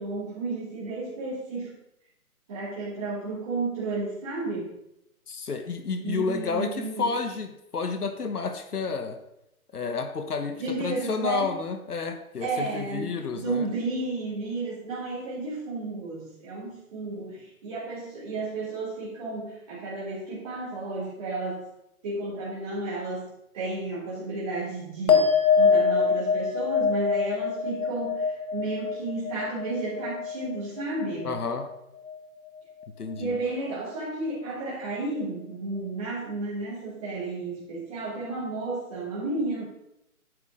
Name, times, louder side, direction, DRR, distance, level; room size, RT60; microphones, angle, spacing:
voice 1, 0.0-1.7 2.5-4.8 6.0-7.1 10.6-11.5 12.4-21.6 22.0-25.3 25.6-31.4 33.1-39.6, right 2 dB, 25° right, -9 dB, 3.4 m, -32 dB
voice 2, 5.3-9.2 9.7-13.7 31.2-31.7 33.0-33.4, left 4 dB, 85° left, 7 dB, 1.4 m, -30 dB
sound 1, 25.1-31.8 32.1-32.7, left 5 dB, 70° left, 1.9 m, -25 dB
9.5 x 8.4 x 3.8 m, 0.84 s
hypercardioid pair, 170°, 44 cm